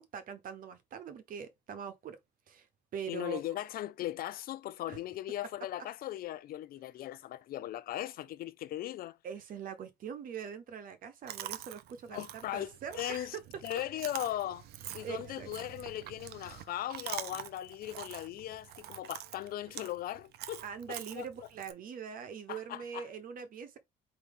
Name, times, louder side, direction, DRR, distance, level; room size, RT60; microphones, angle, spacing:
voice 1, 0.0-2.2 2.5-2.7 2.9-3.4 4.9-5.0 9.2-13.4 15.0-15.5 20.6-23.8, right 7 dB, 55° right, 1.0 m, -43 dB
voice 2, 3.1-9.2 12.1-13.4 13.6-14.7 14.9-20.6 20.9-21.5 22.5-23.1, left 13 dB, 60° left, 0.5 m, -38 dB
Chewing mastication, 11.3-21.7, right 12 dB, 70° right, 0.5 m, -46 dB
4.7 x 2.8 x 3.6 m
cardioid pair, 110°, 17 cm